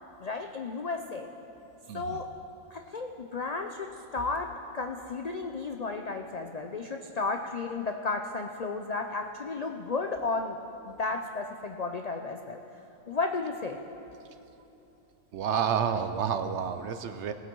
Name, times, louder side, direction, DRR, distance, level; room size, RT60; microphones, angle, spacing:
voice 1, 0.2-1.3 1.9-2.3 2.7-10.6 10.9-12.6 13.1-13.8, left 3 dB, 75° left, 4 dB, 0.3 m, -33 dB
voice 2, 1.9-2.2 15.3-17.3, right 7 dB, 65° right, 9 dB, 0.8 m, -29 dB
19.5 x 8.2 x 4.6 m, 2.9 s
omnidirectional pair, 1.4 m